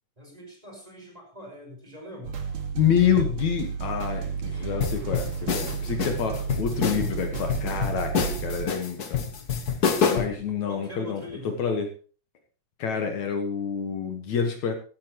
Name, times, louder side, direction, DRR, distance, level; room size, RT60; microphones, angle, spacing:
voice 1, 0.2-2.5 10.7-11.6, left 1 dB, 10° right, 1 dB, 5.0 m, -42 dB
sound 1, 2.2-8.7, right 6 dB, 60° right, 2.9 m, -32 dB
voice 2, 2.7-9.2 10.0-11.9 12.8-14.8, left 7 dB, 70° left, 5 dB, 2.8 m, -27 dB
sound 2, 4.8-10.4, left 6 dB, 50° left, 1.1 m, -27 dB
15.5 x 14.0 x 3.1 m, 0.37 s
omnidirectional pair, 3.5 m